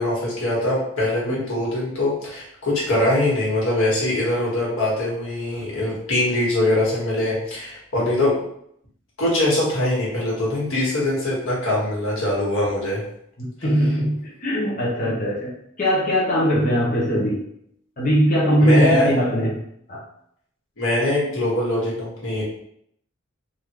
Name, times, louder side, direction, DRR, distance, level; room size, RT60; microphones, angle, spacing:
voice 1, 0.0-8.4 9.2-13.0 18.6-19.1 20.8-22.4, left 1 dB, 80° left, -5 dB, 1.4 m, -22 dB
voice 2, 13.4-15.5 15.8-17.5 18.0-19.6 19.9-20.0, equal, 40° left, -7 dB, 0.7 m, -20 dB
3.4 x 2.5 x 3.0 m, 0.71 s
head